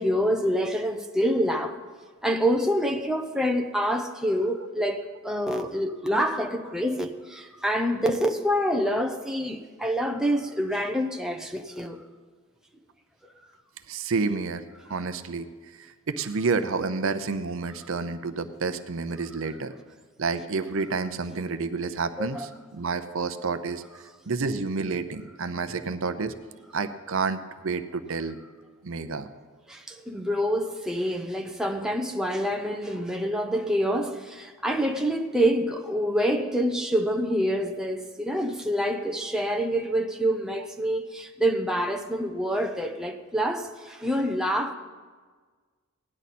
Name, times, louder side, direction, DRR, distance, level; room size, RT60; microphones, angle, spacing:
voice 1, 0.0-1.8 2.2-12.0 22.2-22.5 29.7-44.7, equal, 5° right, 0.6 m, -26 dB
voice 2, 13.9-14.6 14.9-15.5 15.8-19.7 20.2-23.8 24.3-26.3 26.7-28.4 28.8-29.3, right 4 dB, 65° right, 0.6 m, -29 dB
17.0 x 10.5 x 4.2 m
head